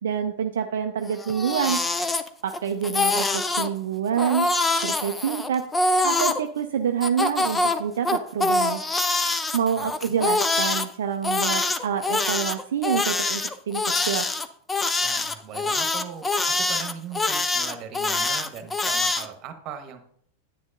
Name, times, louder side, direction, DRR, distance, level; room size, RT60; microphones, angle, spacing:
voice 1, 0.0-1.8 2.4-4.5 4.8-8.8 9.3-14.3, right 8 dB, 60° right, 6 dB, 0.4 m, -27 dB
Crying sobbing, 1.1-2.6 2.8-3.7 4.2-6.4 7.0-10.9 11.2-19.3, left 3 dB, 15° left, 0.5 m, -24 dB
voice 2, 9.7-10.2 15.0-20.0, right 8 dB, 35° right, 7 dB, 1.2 m, -39 dB
9.6 x 9.2 x 2.6 m, 0.64 s
figure-of-eight pair, 90°, 0 cm